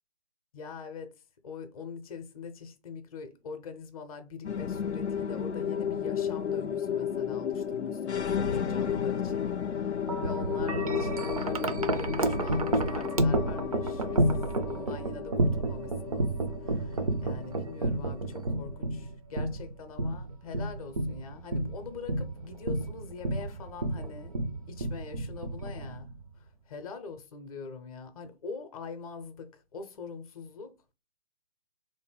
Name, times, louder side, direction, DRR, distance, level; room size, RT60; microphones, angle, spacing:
voice 1, 0.5-1.1 1.4-16.3 16.6-24.4 24.7-30.9, left 5 dB, 35° left, 0.6 m, -44 dB
sound 1, 4.4-19.0, left 8 dB, 80° left, 0.5 m, -33 dB
Wind chime, 10.1-26.3, right 2 dB, 35° right, 0.4 m, -31 dB
3.5 x 2.6 x 3.7 m
figure-of-eight pair, 130°, 34 cm